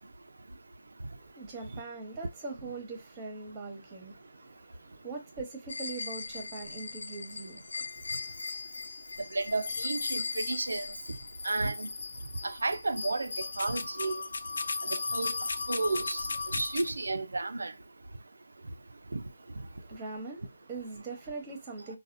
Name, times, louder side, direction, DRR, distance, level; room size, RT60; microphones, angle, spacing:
voice 1, 1.2-8.4 19.7-22.0, right 3 dB, 15° right, 1.0 m, -42 dB
sound 1, 5.7-16.9, left 4 dB, 65° left, 0.3 m, -37 dB
voice 2, 9.3-10.9 11.4-11.9 12.4-14.2 14.9-15.4 15.7-17.7 19.1-19.2, right 3 dB, 80° right, 0.5 m, -32 dB
4.0 x 2.3 x 2.5 m
figure-of-eight pair, 165°, 0 cm